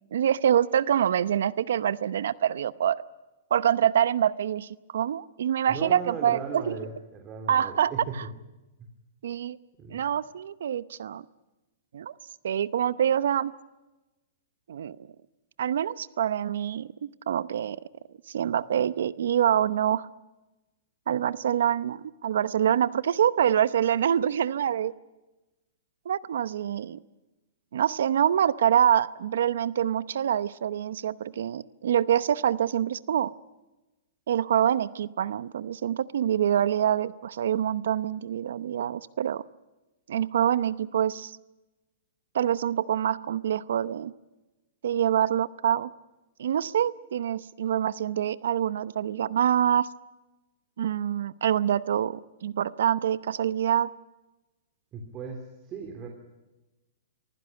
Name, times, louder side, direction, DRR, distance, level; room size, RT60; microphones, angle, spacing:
voice 1, 0.1-3.0 3.5-6.8 7.5-7.9 9.2-9.6 9.9-11.2 11.9-12.1 12.4-13.5 14.7-15.0 15.6-17.8 18.3-20.1 21.1-24.9 26.0-27.0 27.7-33.3 34.3-39.4 40.1-41.4 42.3-44.1 44.8-45.9 46.4-49.9 50.8-53.9, right 9 dB, 75° right, 17 dB, 0.7 m, -25 dB
voice 2, 5.7-8.1 8.8-8.9 9.8-10.0 54.9-56.1, right 5 dB, 25° right, 3 dB, 3.2 m, -38 dB
24.0 x 15.5 x 9.4 m, 1.1 s
hypercardioid pair, 135°, 0 cm